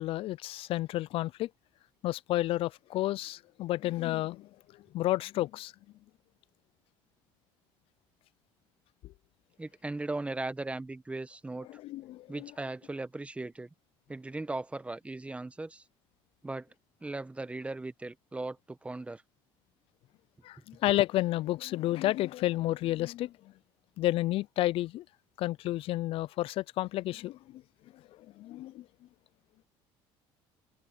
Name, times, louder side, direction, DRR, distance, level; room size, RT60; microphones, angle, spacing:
voice 1, 0.0-1.5 2.0-5.7 11.7-12.5 20.4-23.5 24.0-25.0 25.4-27.6 27.9-28.9, left 16 dB, 60° left, 0.5 m, -31 dB
voice 2, 9.6-11.7 12.3-13.7 14.1-15.8 16.4-16.7 17.0-19.2, right 2 dB, 10° right, 1.2 m, -38 dB
supercardioid pair, 100°, 11 cm